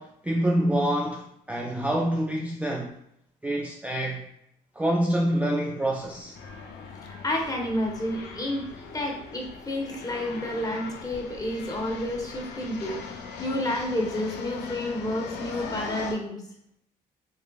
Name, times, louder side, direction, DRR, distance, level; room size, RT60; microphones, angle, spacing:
voice 1, 0.0-2.9 3.4-4.3 4.8-6.3, right 1 dB, 10° right, 0.5 m, -26 dB
sound 1, 6.0-16.1, left 5 dB, 70° left, 0.6 m, -40 dB
voice 2, 7.0-8.7 8.9-13.0 13.4-16.4, left 1 dB, 20° left, 1.1 m, -30 dB
3.8 x 3.1 x 2.3 m
supercardioid pair, 60°, 18 cm